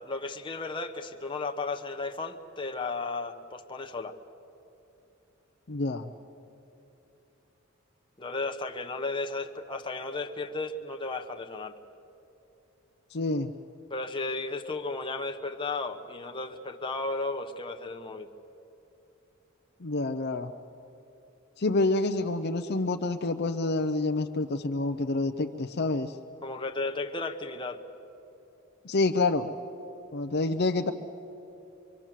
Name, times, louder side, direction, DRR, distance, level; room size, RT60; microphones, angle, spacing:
voice 1, 0.0-4.2 8.2-11.7 13.9-18.3 26.4-27.8, left 3 dB, 25° left, 5 dB, 1.0 m, -34 dB
voice 2, 5.7-6.1 13.1-13.5 19.8-20.5 21.6-26.1 28.8-29.5 30.1-30.9, left 2 dB, 50° left, 6 dB, 0.7 m, -28 dB
24.5 x 24.0 x 7.4 m, 2.9 s
head